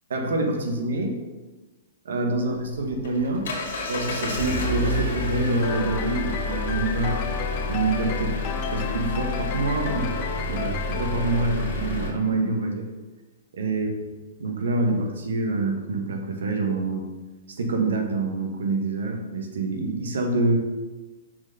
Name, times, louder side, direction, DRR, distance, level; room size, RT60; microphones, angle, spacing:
voice 1, 0.1-1.2 2.0-3.5 3.8-7.2 7.7-8.4 8.7-10.1 10.5-12.9 13.5-13.9 14.4-17.1 17.6-20.6, right 2 dB, 80° right, 3 dB, 1.2 m, -26 dB
Engine, 2.6-12.1, left 2 dB, 75° left, 1.9 m, -29 dB
sound 1, 5.6-12.3, left 8 dB, 40° left, 0.5 m, -34 dB
5.9 x 4.3 x 5.3 m, 1.2 s
hypercardioid pair, 135°, 0 cm